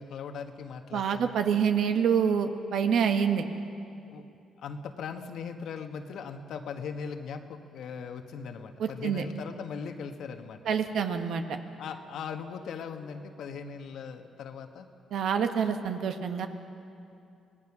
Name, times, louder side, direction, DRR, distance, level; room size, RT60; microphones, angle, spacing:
voice 1, 0.0-1.3 4.1-4.2 4.6-10.6 11.8-14.9, left 6 dB, 75° left, 6 dB, 1.4 m, -39 dB
voice 2, 0.9-3.4 8.8-9.2 10.6-11.6 15.1-16.5, right 7 dB, 75° right, 7 dB, 1.4 m, -27 dB
25.0 x 19.0 x 6.1 m, 2.6 s
cardioid pair, 90°, 0 cm